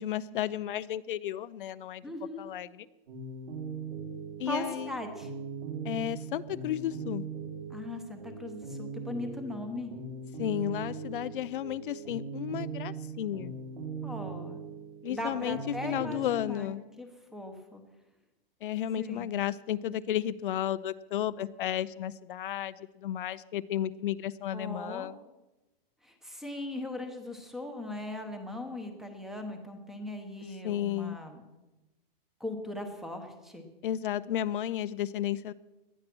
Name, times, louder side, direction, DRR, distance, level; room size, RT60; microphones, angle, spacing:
voice 1, 0.0-2.0 2.4-2.7 4.4-4.9 5.8-7.2 10.4-13.5 15.0-15.6 15.8-16.8 18.6-25.2 30.6-31.2 33.8-35.5, left 11 dB, 60° left, 14 dB, 0.6 m, -33 dB
voice 2, 2.0-2.4 4.5-5.3 7.7-9.9 14.0-14.6 15.1-16.7 17.0-17.8 19.0-19.4 24.5-25.1 26.0-31.4 32.4-33.7, left 1 dB, ahead, 6 dB, 0.9 m, -39 dB
sound 1, 3.1-16.4, right 5 dB, 55° right, 4.8 m, -40 dB
18.5 x 12.0 x 6.1 m, 1.1 s
supercardioid pair, 180°, 29 cm